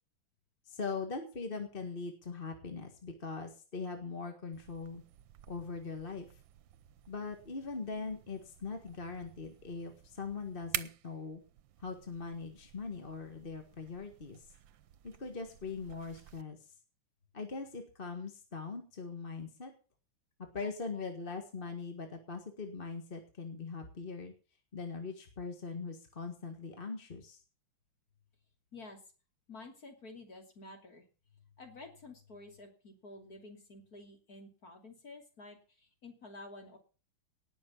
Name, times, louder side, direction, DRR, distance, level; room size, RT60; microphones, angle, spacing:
voice 1, 0.7-5.0 5.5-6.3 7.1-11.4 11.8-14.5 15.0-16.6 17.3-19.7 20.5-24.3 24.7-27.4, left 4 dB, 30° left, 5 dB, 1.8 m, -41 dB
sound 1, 4.5-16.4, right 11 dB, 75° right, 1.5 m, -49 dB
voice 2, 29.5-31.0 31.6-36.8, left 2 dB, 45° left, 4 dB, 3.3 m, -51 dB
18.5 x 6.4 x 7.1 m, 0.36 s
omnidirectional pair, 2.2 m